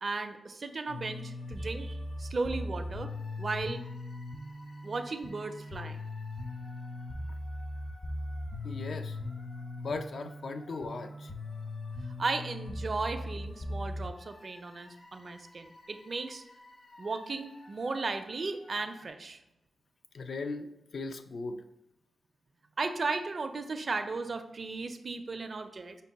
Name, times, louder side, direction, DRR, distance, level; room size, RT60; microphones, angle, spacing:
voice 1, 0.0-3.8 4.8-6.0 12.2-16.4 17.0-19.4 22.8-26.0, right 3 dB, 50° right, 7 dB, 0.4 m, -35 dB
sound 1, 0.9-19.1, left 1 dB, 45° left, 0.9 m, -40 dB
voice 2, 8.6-9.2 9.8-11.3 20.1-21.6, left 3 dB, 70° left, 7 dB, 0.4 m, -38 dB
5.2 x 2.1 x 4.0 m, 0.91 s
cardioid pair, 70°, 0 cm